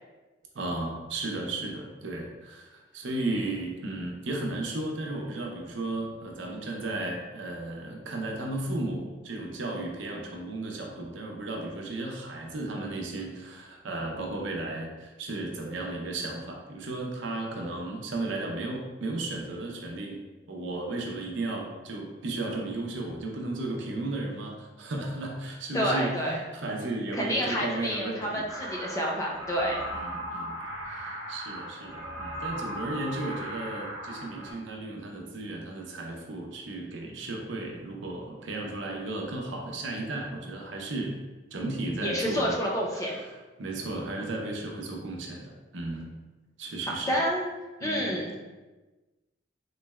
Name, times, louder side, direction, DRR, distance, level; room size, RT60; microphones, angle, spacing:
voice 1, 0.5-20.2 20.5-28.4 29.9-30.6 30.9-41.2 41.5-42.6 42.9-46.1 46.6-47.1 47.8-48.2, right 2 dB, 80° right, 0 dB, 0.6 m, -34 dB
voice 2, 25.7-26.4 27.1-29.8 42.0-43.2 47.1-47.5 47.8-48.3, equal, 15° left, -2 dB, 0.4 m, -29 dB
sound 1, 28.5-34.5, right 1 dB, 20° right, 0.8 m, -37 dB
3.9 x 3.1 x 2.3 m, 1.2 s
head